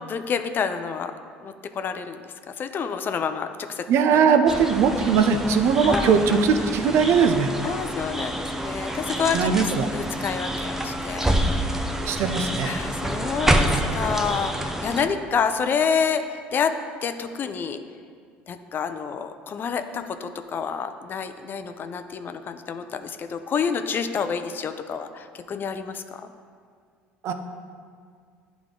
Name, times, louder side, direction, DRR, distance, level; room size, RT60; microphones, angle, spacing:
voice 1, 0.1-1.1 1.4-3.9 4.1-4.3 5.8-6.4 7.6-11.8 12.6-17.8 18.5-26.3, left 6 dB, 40° left, 9 dB, 0.4 m, -28 dB
voice 2, 3.9-7.5 9.3-9.9 12.0-12.7 27.2-27.3, right 6 dB, 60° right, 7 dB, 0.5 m, -20 dB
sound 1, 4.5-15.1, right 1 dB, 5° right, 0.5 m, -27 dB
10.0 x 3.5 x 3.7 m, 2.1 s
supercardioid pair, 80°, 5 cm